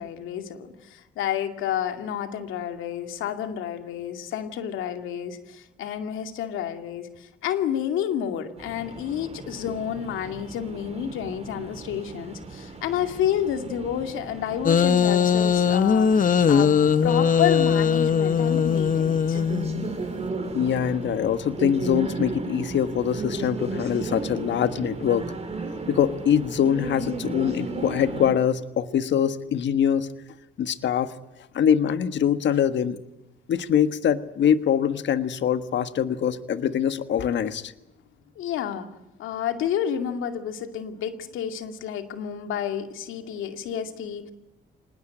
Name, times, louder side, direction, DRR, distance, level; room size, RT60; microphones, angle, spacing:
voice 1, 0.0-16.7 17.0-19.4 38.4-38.9 39.2-44.3, left 9 dB, 85° left, 7 dB, 2.4 m, -30 dB
sound 1, 8.6-28.3, right 3 dB, 30° right, 5.6 m, -35 dB
sound 2, 14.7-20.0, left 7 dB, 40° left, 1.0 m, -20 dB
voice 2, 20.5-25.3 25.9-30.1 30.6-31.1 31.5-33.0 33.5-37.7, left 8 dB, 65° left, 11 dB, 1.5 m, -23 dB
25.5 x 20.0 x 9.1 m, 0.93 s
cardioid pair, 90°, 20 cm